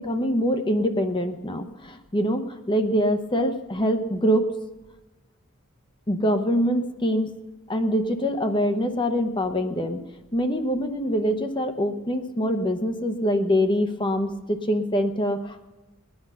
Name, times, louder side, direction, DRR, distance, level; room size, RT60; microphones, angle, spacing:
voice 1, 0.0-4.5 6.1-7.3 7.7-10.0 10.3-15.7, equal, 25° left, 6 dB, 0.9 m, -24 dB
20.5 x 10.5 x 5.6 m, 1.1 s
head